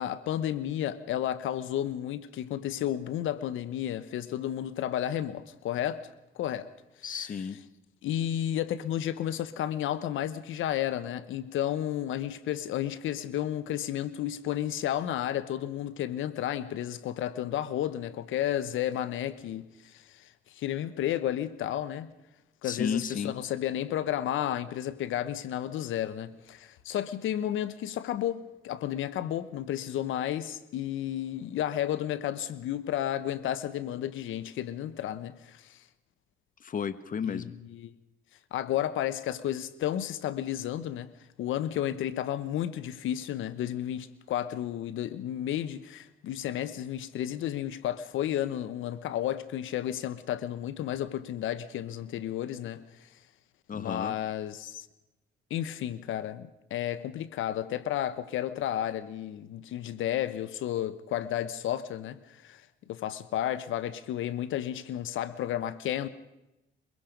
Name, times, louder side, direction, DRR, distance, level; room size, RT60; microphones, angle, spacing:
voice 1, 0.0-6.1 6.3-6.7 8.0-22.1 22.6-35.8 37.2-37.9 38.5-41.1 41.4-53.1 53.7-54.9 55.5-62.6 62.9-66.1, left 11 dB, 80° left, 1.1 m, -32 dB
voice 2, 7.0-7.6 22.6-23.3 36.6-37.5 53.7-54.2, left 6 dB, 45° left, 1.2 m, -33 dB
23.5 x 22.5 x 5.2 m
cardioid pair, 90°, 20 cm